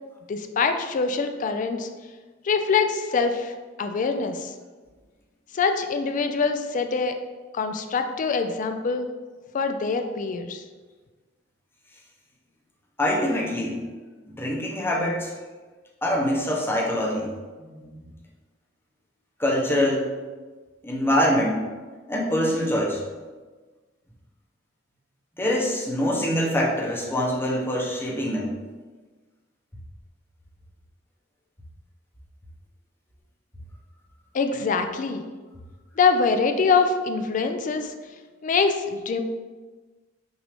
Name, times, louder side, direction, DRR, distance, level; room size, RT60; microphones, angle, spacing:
voice 1, 0.3-1.9 2.4-3.5 3.8-4.5 5.5-7.1 7.5-9.1 9.5-10.6 34.3-35.2 36.0-37.9 38.4-39.2, left 4 dB, 45° left, 7 dB, 0.3 m, -24 dB
voice 2, 13.0-13.8 14.4-15.3 16.0-17.3 17.6-18.0 19.4-20.1 20.8-21.6 22.1-23.0 25.4-28.5, equal, 10° left, -3 dB, 0.8 m, -24 dB
5.9 x 2.6 x 3.4 m, 1.3 s
head